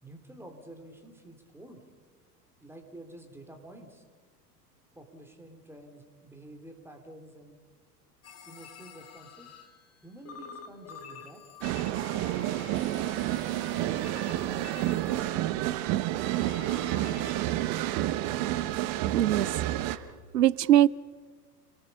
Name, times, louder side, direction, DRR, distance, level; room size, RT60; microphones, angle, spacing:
voice 1, 0.0-1.8 2.6-4.0 5.0-7.6 8.3-9.5 10.0-11.4, right 1 dB, 5° right, 3.4 m, -49 dB
sound 1, 8.2-10.0 10.3-15.8 16.3-17.4, left 7 dB, 30° left, 2.3 m, -48 dB
sound 2, 11.6-20.0, right 15 dB, 40° right, 1.1 m, -29 dB
voice 2, 19.1-19.5 20.3-20.9, right 12 dB, 75° right, 0.6 m, -21 dB
30.0 x 18.5 x 5.6 m
figure-of-eight pair, 85°, 49 cm